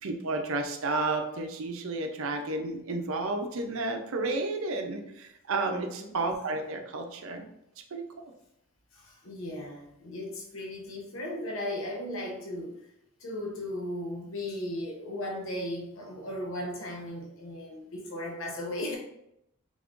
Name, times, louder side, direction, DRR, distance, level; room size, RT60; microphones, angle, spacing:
voice 1, 0.0-7.5 7.9-8.3, right 2 dB, 75° right, 4 dB, 0.6 m, -32 dB
voice 2, 8.9-12.9 13.2-19.0, left 1 dB, 65° left, -1 dB, 0.7 m, -36 dB
3.6 x 3.5 x 2.5 m, 0.80 s
head